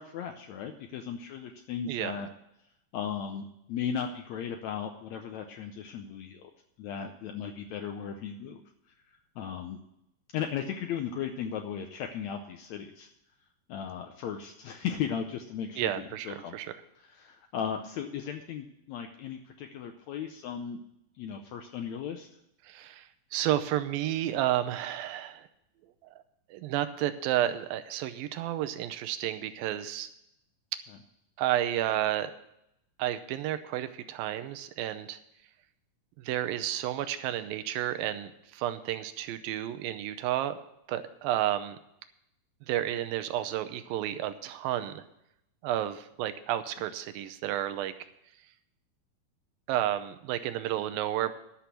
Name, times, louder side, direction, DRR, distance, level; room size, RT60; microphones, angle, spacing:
voice 1, 0.0-2.3 2.9-6.5 6.8-8.6 9.4-9.8 10.3-13.1 13.7-16.6 17.0-20.8 21.2-22.3, left 8 dB, 85° left, 5 dB, 1.6 m, -36 dB
voice 2, 15.8-16.7 22.6-25.5 26.1-26.2 26.5-30.1 31.4-32.3 33.0-35.2 36.2-40.6 40.9-41.8 42.7-45.0 45.6-47.9 49.7-51.3, right 12 dB, 85° right, 10 dB, 2.5 m, -31 dB
11.5 x 6.1 x 8.3 m, 0.80 s
omnidirectional pair, 4.1 m